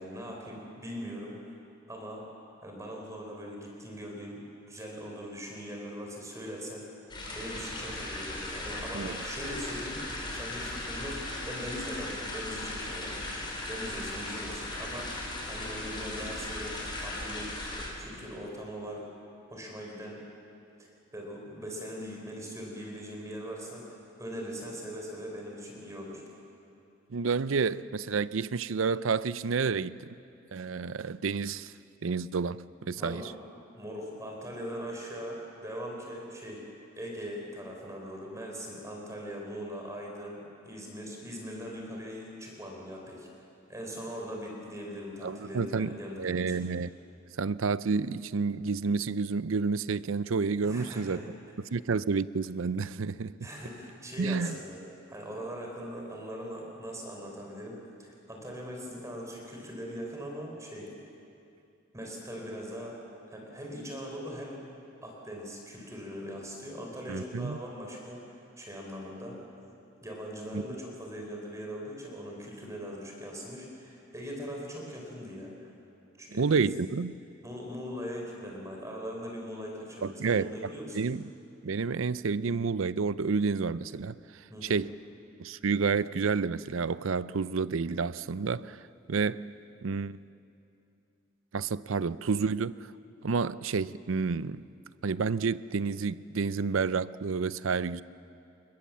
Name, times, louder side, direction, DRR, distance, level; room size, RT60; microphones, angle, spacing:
voice 1, 0.0-1.4 1.9-2.3 2.6-4.4 4.7-6.8 7.3-19.1 19.5-20.2 20.8-26.2 33.0-33.3 33.7-36.6 37.0-43.3 43.7-46.6 50.6-51.3 53.4-54.8 55.1-60.9 61.9-63.0 63.3-64.6 65.0-69.4 70.0-75.7 76.2-76.5 77.4-81.0 84.5-84.8, equal, 15° right, 4.3 m, -41 dB
sound 1, 7.1-17.9, left 2 dB, 25° left, 5.2 m, -37 dB
voice 2, 27.1-30.1 30.5-31.7 32.0-33.2 45.2-46.9 47.4-51.2 51.7-53.3 54.2-54.6 67.1-67.6 70.5-70.6 76.3-77.1 80.0-80.5 80.9-81.3 81.6-84.9 85.4-88.8 89.1-89.5 89.8-90.2 91.5-92.9 93.2-94.7 95.0-98.0, right 5 dB, 75° right, 0.5 m, -30 dB
27.5 x 21.5 x 7.5 m
head